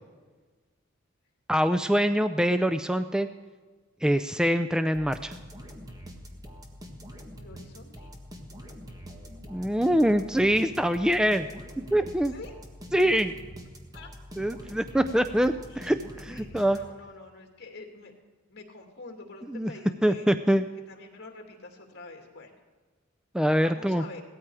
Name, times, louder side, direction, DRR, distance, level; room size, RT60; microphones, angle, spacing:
voice 1, 1.5-3.3 4.0-5.3 9.5-11.5 11.9-12.3 12.9-13.3 14.4-16.8 19.5-19.7 20.0-20.6 23.3-24.0, equal, 5° right, 9 dB, 0.4 m, -24 dB
sound 1, 4.9-17.2, equal, 20° right, 1.6 m, -45 dB
voice 2, 7.4-8.1 12.3-12.5 13.9-14.1 15.7-16.0 16.3-18.1 18.5-20.3 20.9-22.5 23.5-24.2, left 3 dB, 55° left, 3 dB, 2.5 m, -46 dB
17.5 x 13.5 x 4.9 m, 1.4 s
head